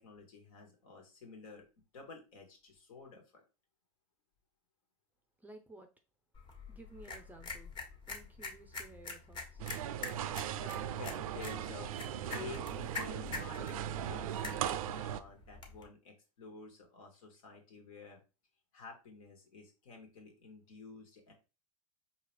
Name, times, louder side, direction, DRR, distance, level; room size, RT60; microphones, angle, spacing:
voice 1, 0.0-1.7 1.9-3.4 10.6-11.9 12.3-18.2 18.7-21.3, left 4 dB, 75° left, 1.7 m, -51 dB
voice 2, 5.4-5.9 6.7-7.7 8.1-9.6, right 2 dB, 10° right, 0.5 m, -54 dB
sound 1, 6.3-15.9, left 4 dB, 25° left, 1.2 m, -46 dB
sound 2, 9.6-15.2, right 11 dB, 75° right, 0.4 m, -38 dB
4.7 x 2.9 x 3.2 m
hypercardioid pair, 105°, 18 cm